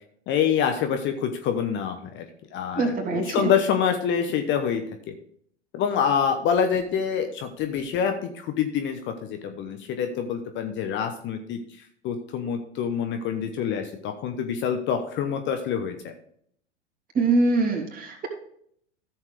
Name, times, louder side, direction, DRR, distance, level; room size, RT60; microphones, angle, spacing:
voice 1, 0.3-2.2 2.5-5.1 5.7-11.6 12.0-16.1, left 7 dB, 30° left, 6 dB, 1.0 m, -26 dB
voice 2, 2.7-3.5 17.1-18.3, right 3 dB, 25° right, 1 dB, 3.0 m, -23 dB
14.0 x 7.3 x 3.4 m, 0.65 s
figure-of-eight pair, 90°, 35 cm